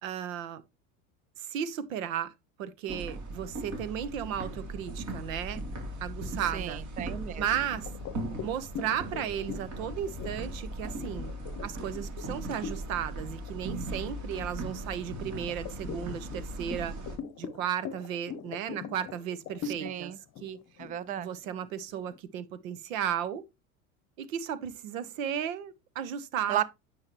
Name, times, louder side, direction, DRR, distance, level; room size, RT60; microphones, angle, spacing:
voice 1, 0.0-0.6 1.4-2.3 2.6-5.6 6.0-6.8 7.4-7.9 8.4-11.3 11.6-17.0 17.4-20.1 20.4-20.6 21.2-23.4 24.2-26.6, right 9 dB, 75° right, 1.2 m, -34 dB
sound 1, 2.9-17.2, right 1 dB, 45° right, 3.1 m, -38 dB
voice 2, 6.5-7.5 19.6-20.2 20.8-21.3 26.5-26.6, right 11 dB, 20° right, 0.4 m, -33 dB
sound 2, 7.9-13.0 13.4-13.7 14.1-14.9 15.5-22.2, left 7 dB, 40° left, 0.8 m, -42 dB
9.6 x 5.9 x 3.0 m
hypercardioid pair, 90°, 41 cm